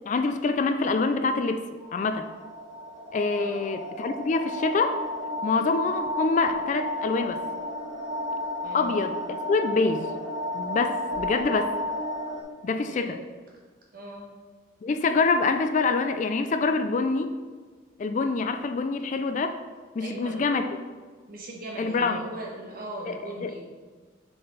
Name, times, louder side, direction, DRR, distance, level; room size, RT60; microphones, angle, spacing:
voice 1, 0.1-1.6 1.9-2.2 3.1-5.0 5.4-7.4 8.7-10.1 10.5-11.7 12.6-13.2 14.8-17.4 18.0-19.6 20.0-20.6 21.8-22.2 23.1-23.5, left 3 dB, 40° left, 8 dB, 0.3 m, -25 dB
sound 1, 1.8-12.4, left 1 dB, 25° right, 1.4 m, -33 dB
voice 2, 3.3-3.8 8.6-9.0 12.8-13.2 13.9-14.3 20.0-20.8 21.3-23.7, right 1 dB, 45° right, -1 dB, 1.3 m, -39 dB
6.5 x 4.4 x 4.0 m, 1.4 s
head